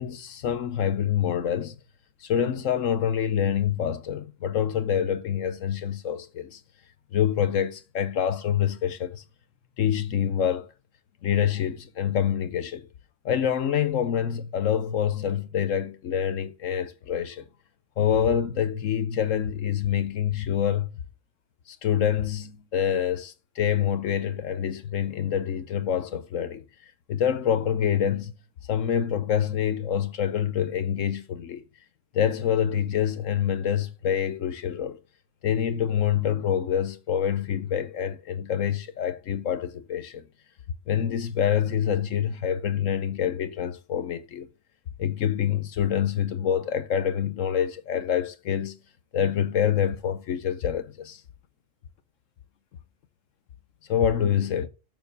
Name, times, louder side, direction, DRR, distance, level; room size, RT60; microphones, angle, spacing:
voice 1, 0.0-1.8 2.2-6.6 7.1-9.2 9.8-10.7 11.2-12.9 13.2-17.5 18.0-20.9 21.7-28.3 28.7-31.6 32.1-35.0 35.4-40.3 40.9-44.5 45.0-48.8 49.1-51.2 53.9-54.7, left 9 dB, 70° left, 1.1 m, -26 dB
7.0 x 6.2 x 6.7 m
omnidirectional pair, 1.4 m